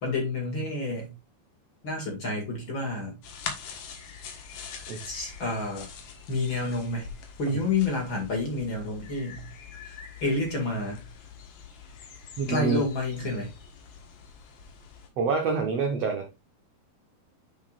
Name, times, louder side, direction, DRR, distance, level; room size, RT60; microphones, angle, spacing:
voice 1, 0.0-1.1 1.8-3.2 5.1-5.9 6.3-7.1 7.4-9.5 9.8-11.0 12.5-13.5, left 2 dB, 40° left, 0 dB, 2.3 m, -29 dB
sound 1, 3.2-15.1, left 6 dB, 65° left, 2.9 m, -44 dB
voice 2, 12.4-12.8 15.2-16.3, right 5 dB, 75° right, 4 dB, 1.5 m, -27 dB
9.5 x 5.4 x 2.4 m, 0.24 s
omnidirectional pair, 4.4 m